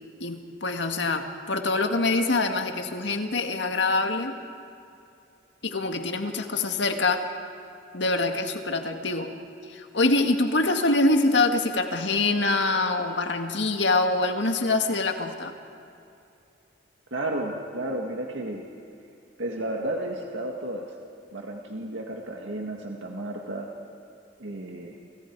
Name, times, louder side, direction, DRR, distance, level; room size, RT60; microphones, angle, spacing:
voice 1, 0.2-4.4 5.6-7.3 7.9-9.3 9.7-15.5, left 2 dB, 70° left, 5 dB, 1.9 m, -25 dB
voice 2, 17.1-18.6 19.4-20.9 21.3-23.7 24.4-25.0, right 1 dB, 85° right, 0 dB, 2.0 m, -32 dB
29.5 x 27.5 x 4.8 m, 2.6 s
head